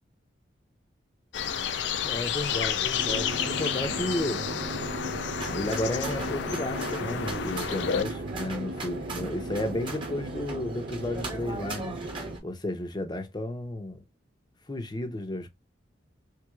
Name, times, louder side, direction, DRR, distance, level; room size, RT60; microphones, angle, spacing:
sound 1, 1.3-8.0, left 8 dB, 70° left, 0.4 m, -31 dB
voice 1, 2.0-4.4 5.5-12.0 12.4-14.0 14.7-15.5, left 1 dB, 25° left, 0.6 m, -33 dB
sound 2, 3.0-12.4, right 1 dB, 55° right, 0.5 m, -37 dB
sound 3, 5.3-12.4, right 2 dB, 25° right, 1.1 m, -40 dB
3.4 x 3.1 x 2.3 m
head